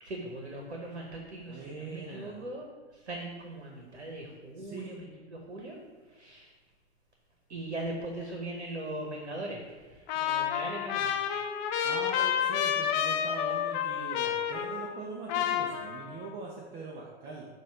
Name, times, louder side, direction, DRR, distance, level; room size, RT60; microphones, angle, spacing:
voice 1, 0.0-5.8 6.1-6.5 7.5-11.2, right 1 dB, 85° right, 1 dB, 1.1 m, -40 dB
voice 2, 1.5-2.5 4.6-4.9 11.8-17.5, right 4 dB, 30° right, -2 dB, 0.9 m, -42 dB
Trumpet, 10.1-15.0 15.3-16.3, left 9 dB, 45° left, 0.6 m, -30 dB
7.3 x 2.7 x 5.5 m, 1.3 s
figure-of-eight pair, 100°, 33 cm